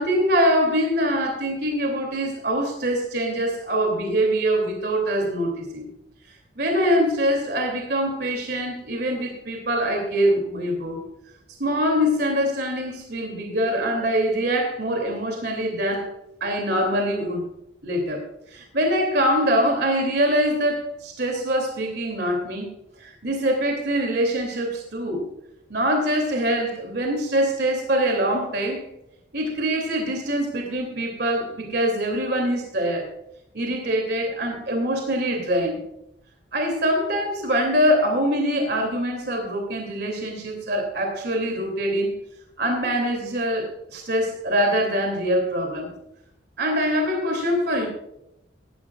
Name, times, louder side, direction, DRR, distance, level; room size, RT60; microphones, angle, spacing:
voice 1, 0.0-5.9 6.6-11.0 11.6-16.1 16.4-17.5 17.8-18.2 18.5-25.2 25.7-28.8 29.3-33.1 33.5-35.8 36.5-42.2 42.6-45.9 46.6-47.9, equal, 55° right, 2 dB, 2.8 m, -24 dB
16.0 x 12.0 x 2.4 m, 0.80 s
head